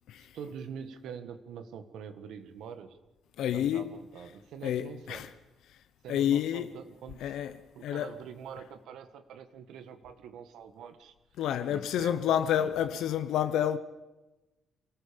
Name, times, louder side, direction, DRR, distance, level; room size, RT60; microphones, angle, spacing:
voice 1, 0.2-3.0 3.5-5.3 6.0-7.4 7.8-11.1 11.7-12.7, right 7 dB, 85° right, 1.7 m, -45 dB
voice 2, 3.4-4.0 4.6-5.3 6.1-6.7 7.2-7.5 7.8-8.1 11.4-13.8, left 10 dB, 90° left, 0.8 m, -29 dB
27.5 x 19.0 x 5.3 m
cardioid pair, 175°, 0 cm